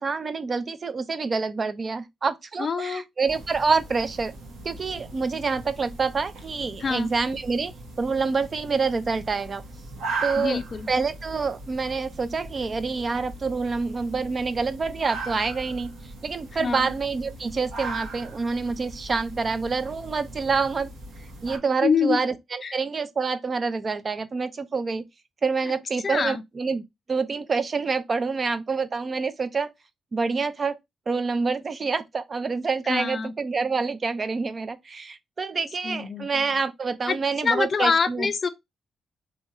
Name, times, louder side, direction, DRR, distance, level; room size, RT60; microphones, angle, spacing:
voice 1, 0.0-4.3 4.6-9.6 10.2-20.9 21.4-25.0 25.4-26.8 27.1-29.7 30.1-30.8 31.1-38.3, right 4 dB, 30° right, 0.4 m, -27 dB
voice 2, 2.6-3.0 6.8-7.1 10.4-10.9 16.6-16.9 21.8-22.2 22.6-22.8 26.0-26.4 32.9-33.3 35.8-36.3 37.1-37.2 37.4-38.5, left 5 dB, 35° left, 0.4 m, -25 dB
sound 1, 3.3-21.6, right 3 dB, 90° right, 1.1 m, -39 dB
2.7 x 2.4 x 4.1 m
cardioid pair, 150°, 0 cm